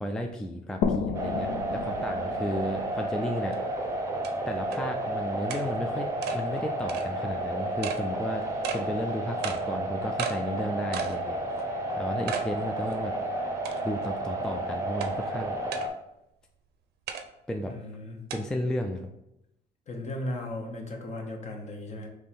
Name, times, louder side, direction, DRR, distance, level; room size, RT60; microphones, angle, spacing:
voice 1, 0.0-3.6 4.5-8.4 8.7-11.4 11.9-13.1 13.8-15.6 17.5-17.7 18.3-19.1, left 1 dB, 5° left, 3 dB, 0.3 m, -33 dB
sound 1, 0.8-4.3, left 6 dB, 75° left, 0.4 m, -33 dB
sound 2, 1.1-15.9, right 1 dB, 15° right, 0.7 m, -32 dB
sound 3, 3.5-3.6 4.2-4.3 4.7-4.8 5.5-5.6 6.2-6.4 6.9-7.1 7.8-8.0 8.6-8.8 9.4-9.6 10.2-10.4 10.9-11.2 11.6-11.7 12.3-12.5 12.9-13.0 13.6-14.0 15.0-15.1 15.7-15.9 17.1-17.2 18.3-18.4, right 7 dB, 70° right, 0.6 m, -33 dB
voice 2, 17.6-18.2 19.9-22.1, left 1 dB, 40° left, 2 dB, 1.0 m, -36 dB
3.6 x 3.1 x 4.2 m, 0.85 s
cardioid pair, 110°, 17 cm